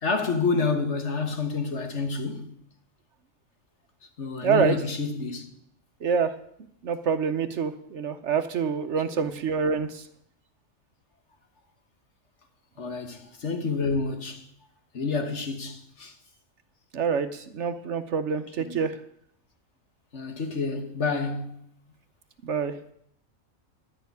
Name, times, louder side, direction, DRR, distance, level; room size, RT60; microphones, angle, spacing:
voice 1, 0.0-2.5 4.2-5.5 9.1-9.3 12.8-14.5 14.9-16.2 18.6-18.8 20.1-21.6, left 4 dB, 55° left, 1.7 m, -29 dB
voice 2, 4.4-4.8 6.0-6.4 6.8-10.1 16.9-19.0 22.4-22.8, right 6 dB, 60° right, 1.0 m, -26 dB
11.0 x 6.7 x 9.5 m
omnidirectional pair, 1.4 m